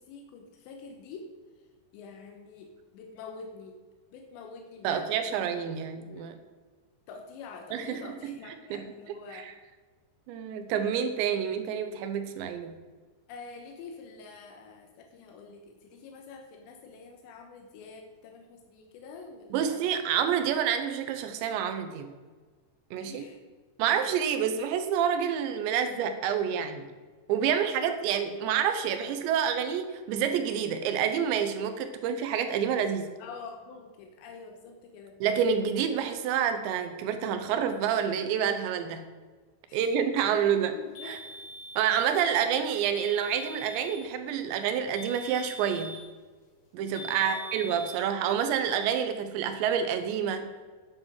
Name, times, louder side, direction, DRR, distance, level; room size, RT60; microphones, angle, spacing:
voice 1, 0.0-1.3 1.6-1.7 1.9-3.8 4.1-5.6 6.1-6.3 7.1-9.5 13.3-19.8 23.0-23.4 27.4-27.5 33.2-35.2 39.7-40.4 40.7-41.2 47.1-47.4, left 4 dB, 90° left, 3 dB, 3.3 m, -46 dB
voice 2, 4.8-6.3 7.7-8.4 8.7-8.9 9.3-9.4 10.3-12.7 19.5-22.1 22.9-23.2 23.8-26.9 27.3-33.1 35.2-39.0 39.7-40.7 41.0-41.2 41.8-46.0 46.7-50.5, right 8 dB, 85° right, 8 dB, 3.1 m, -28 dB
sound 1, 40.9-42.1 42.9-44.1 44.9-46.1 46.9-48.1, equal, 45° left, 3.2 m, -43 dB
9.9 x 7.7 x 6.2 m, 1.4 s
omnidirectional pair, 5.1 m